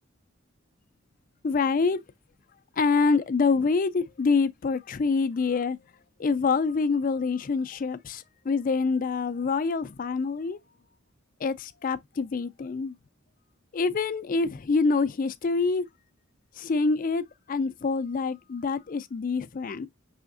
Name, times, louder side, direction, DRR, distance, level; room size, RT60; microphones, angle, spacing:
voice 1, 1.4-2.0 2.8-5.8 6.2-10.6 11.4-13.0 13.7-15.9 16.6-19.9, left 4 dB, 40° left, 0.4 m, -26 dB
5.6 x 3.3 x 2.5 m
head